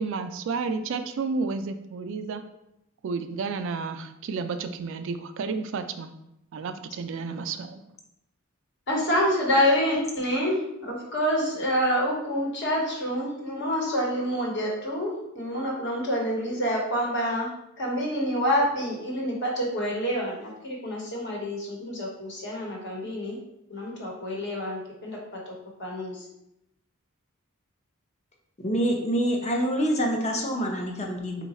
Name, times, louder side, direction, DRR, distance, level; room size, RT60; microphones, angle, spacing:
voice 1, 0.0-2.4 3.0-6.1 6.5-7.8, right 4 dB, 60° right, 8 dB, 0.3 m, -31 dB
voice 2, 8.9-17.5 17.8-23.4 23.7-25.2 25.5-25.6 25.8-26.3, equal, 55° left, -2 dB, 1.1 m, -27 dB
voice 3, 28.6-31.4, equal, 30° left, 1 dB, 0.6 m, -26 dB
3.8 x 2.3 x 4.1 m, 0.83 s
head